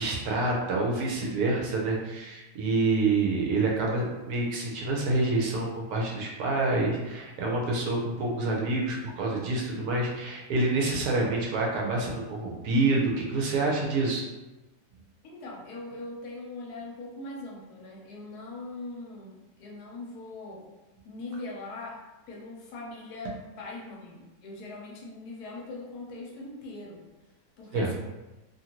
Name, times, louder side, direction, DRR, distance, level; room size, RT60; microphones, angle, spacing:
voice 1, 0.0-14.2 27.7-27.9, right 2 dB, 75° right, -2 dB, 1.1 m, -27 dB
voice 2, 15.2-20.7 21.0-22.0 22.3-27.0 27.6-28.0, left 2 dB, 75° left, -1 dB, 1.1 m, -41 dB
2.8 x 2.5 x 2.9 m, 1.1 s
omnidirectional pair, 1.8 m